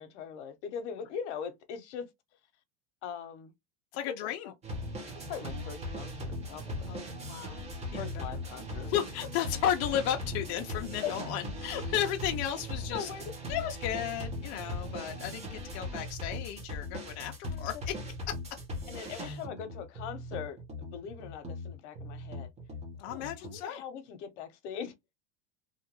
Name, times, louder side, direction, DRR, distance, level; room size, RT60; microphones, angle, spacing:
voice 1, 0.0-2.1 3.0-3.5 4.1-4.5 5.1-6.9 8.0-8.9 11.0-11.1 12.9-13.3 17.5-18.1 18.9-22.5 23.1-24.9, left 7 dB, 75° left, 0.9 m, -41 dB
voice 2, 3.9-4.5 6.9-7.6 7.9-8.3 8.8-13.1 13.5-17.3 17.6-17.9 19.2-19.4 23.0-23.8, left 10 dB, 55° left, 0.5 m, -34 dB
sound 1, 4.6-23.6, left 1 dB, 20° right, 0.9 m, -39 dB
2.7 x 2.5 x 2.9 m
supercardioid pair, 130°, 35 cm